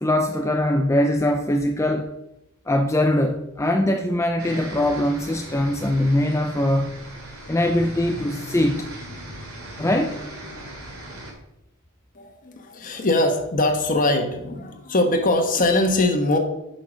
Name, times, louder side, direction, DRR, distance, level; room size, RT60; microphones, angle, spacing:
voice 1, 0.0-2.1 2.7-7.0 7.5-8.9 9.8-10.2, left 1 dB, 15° left, 5 dB, 0.5 m, -22 dB
sound 1, 4.4-11.3, right 1 dB, 70° right, 3.1 m, -38 dB
voice 2, 12.1-16.4, left 2 dB, 40° left, 3 dB, 1.3 m, -22 dB
9.5 x 5.8 x 6.3 m, 0.86 s
head